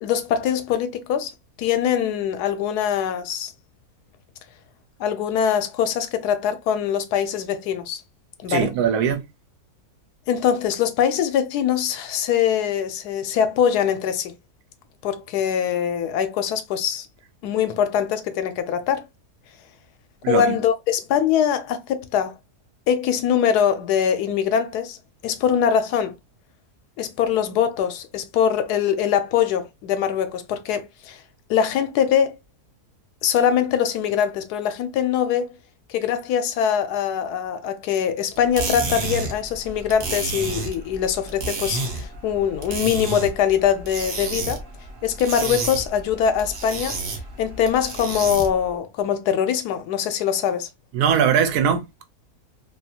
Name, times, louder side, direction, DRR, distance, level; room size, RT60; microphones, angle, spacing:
voice 1, 0.0-1.3 1.6-3.5 5.0-8.0 8.4-8.7 10.3-14.3 15.0-17.1 17.4-19.0 20.3-22.3 22.9-25.0 25.2-26.1 27.0-31.2 31.5-32.4 33.2-35.5 35.9-44.6 45.0-47.0 47.4-50.7, left 8 dB, 80° left, 1.1 m, -22 dB
voice 2, 8.5-9.2 20.2-20.6 50.9-52.0, right 8 dB, 80° right, 1.1 m, -20 dB
sound 1, 38.3-48.7, right 3 dB, 50° right, 0.7 m, -31 dB
2.8 x 2.4 x 2.7 m
omnidirectional pair, 1.7 m